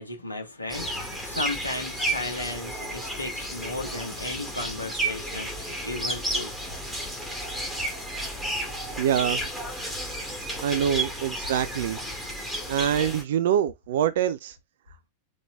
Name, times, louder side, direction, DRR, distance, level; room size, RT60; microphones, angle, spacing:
voice 1, 0.0-6.5, left 2 dB, 80° left, 1.9 m, -35 dB
sound 1, 0.7-13.2, right 1 dB, ahead, 2.1 m, -32 dB
voice 2, 9.0-9.4 10.6-12.0 12.7-14.6, right 9 dB, 55° right, 0.4 m, -25 dB
6.2 x 3.8 x 2.2 m
figure-of-eight pair, 90°, 0 cm